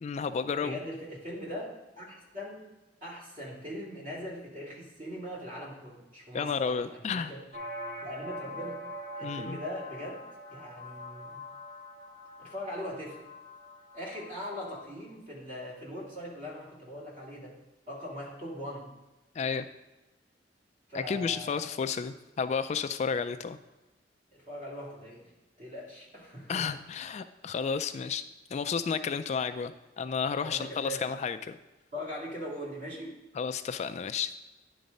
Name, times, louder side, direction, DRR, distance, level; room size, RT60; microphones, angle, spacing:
voice 1, 0.0-0.8 6.3-7.3 9.2-9.6 19.4-19.7 20.9-23.6 26.5-28.2 28.5-31.5 33.4-34.3, left 6 dB, 40° left, 10 dB, 0.3 m, -32 dB
voice 2, 0.6-2.6 3.0-7.4 8.0-8.8 9.2-10.2 10.5-11.4 12.4-13.2 13.9-17.5 17.9-18.9 20.9-21.6 24.3-25.3 25.6-26.7 30.4-31.0 31.9-33.2, equal, 45° right, -5 dB, 2.6 m, -40 dB
sound 1, 7.5-14.9, equal, 70° right, 1.5 m, -43 dB
10.5 x 4.0 x 5.3 m, 1.1 s
head